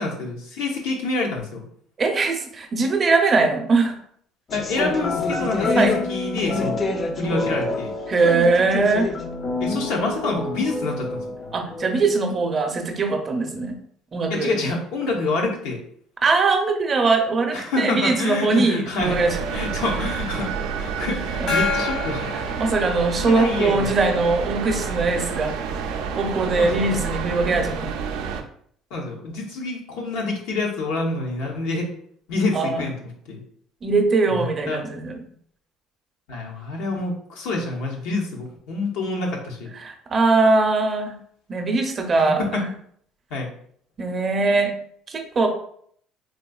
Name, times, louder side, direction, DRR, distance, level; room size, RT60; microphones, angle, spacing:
voice 1, 0.0-1.7 4.5-6.8 7.2-7.9 9.6-11.2 14.3-15.8 17.5-19.2 19.5-20.5 20.8-22.3 23.1-23.9 26.6-26.7 28.9-31.9 32.3-33.0 33.3-33.4 34.3-34.8 36.3-39.7 42.2-42.6 43.3-43.5, left 3 dB, 85° left, 0 dB, 0.7 m, -27 dB
voice 2, 2.0-4.0 5.8-6.0 8.1-9.1 11.5-13.8 14.1-14.6 16.2-19.4 21.4-21.5 22.6-25.6 26.1-28.0 32.5-32.8 33.8-35.2 39.8-41.1 41.5-42.6 44.0-44.7 45.1-45.5, right 3 dB, 35° right, 4 dB, 0.5 m, -21 dB
sound 1, 4.5-12.5, left 3 dB, 35° left, 0.4 m, -27 dB
sound 2, 19.0-28.4, right 6 dB, 85° right, 0.3 m, -29 dB
Gong, 21.5-23.5, left 4 dB, 65° left, 1.1 m, -28 dB
3.7 x 2.6 x 2.2 m, 0.64 s
cardioid pair, 115°, 0 cm